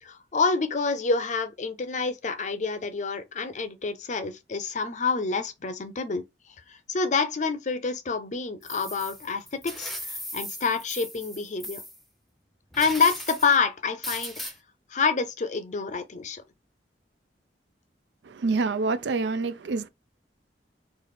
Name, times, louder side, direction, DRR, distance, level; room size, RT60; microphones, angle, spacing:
voice 1, 0.0-6.2 6.7-11.8 12.8-14.3 14.9-16.4, left 4 dB, 45° left, 0.5 m, -27 dB
sound 1, 8.6-12.0 12.7-13.6 14.0-14.5, equal, ahead, 0.7 m, -38 dB
voice 2, 18.2-19.9, right 3 dB, 75° right, 0.4 m, -27 dB
3.2 x 2.4 x 4.0 m
head